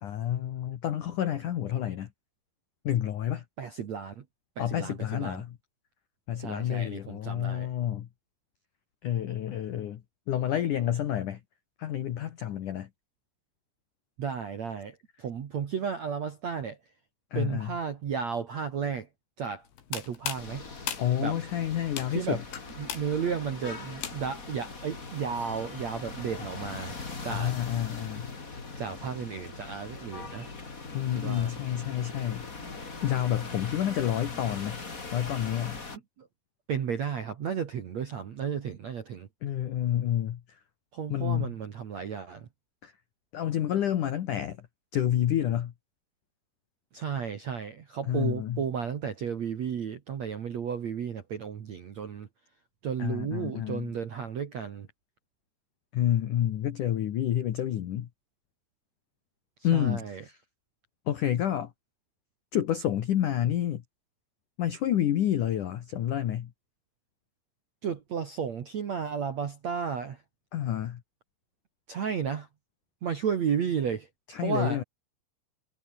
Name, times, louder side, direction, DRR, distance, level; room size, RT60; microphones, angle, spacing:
voice 1, 0.0-2.1 2.8-3.4 4.6-5.6 6.3-8.1 9.0-10.0 10.3-11.4 11.8-12.9 17.3-17.7 21.0-22.4 27.3-28.3 30.9-32.5 33.0-34.8 35.1-35.8 39.4-40.4 41.1-41.5 42.8-42.9 43.3-44.6 44.9-45.7 48.1-48.6 53.0-53.9 55.9-58.1 59.6-60.4 61.1-61.7 62.5-63.8 64.6-66.5 70.5-71.0 74.3-74.8, left 11 dB, 85° left, 1.8 m, -29 dB
voice 2, 3.6-4.2 4.6-5.4 6.4-7.7 14.2-16.8 17.3-19.1 19.4-20.7 21.2-21.4 22.1-22.4 22.8-27.5 28.8-30.5 31.1-31.5 36.2-36.3 36.7-39.3 40.9-42.5 46.9-52.3 52.8-54.9 59.7-60.2 67.8-70.2 71.9-72.5 73.0-74.1 74.4-74.8, right 7 dB, 60° right, 1.8 m, -33 dB
sound 1, 19.7-24.5, left 9 dB, 65° left, 5.2 m, -39 dB
sound 2, 20.4-36.0, left 3 dB, 25° left, 2.3 m, -41 dB
omnidirectional pair, 5.9 m